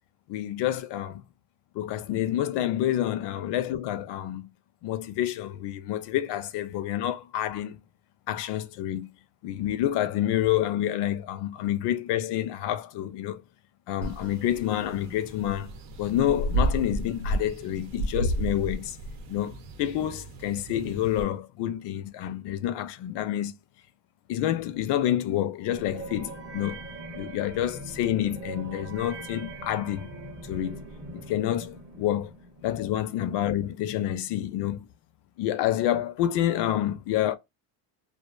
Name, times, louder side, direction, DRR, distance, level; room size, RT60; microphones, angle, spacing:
voice 1, 0.3-1.2 1.7-4.5 4.8-7.8 8.3-9.1 9.4-13.4 13.9-15.7 16.0-19.0 19.3-23.5 24.3-26.8 27.1-30.1 30.4-30.8 31.1-32.3 32.6-34.9 35.4-37.3, left 12 dB, 60° left, 0.5 m, -28 dB
sound 1, 14.0-21.2, right 1 dB, 70° right, 0.7 m, -32 dB
sound 2, 25.7-32.9, right 2 dB, 30° right, 0.8 m, -41 dB
2.4 x 2.2 x 2.3 m
supercardioid pair, 100°, 47 cm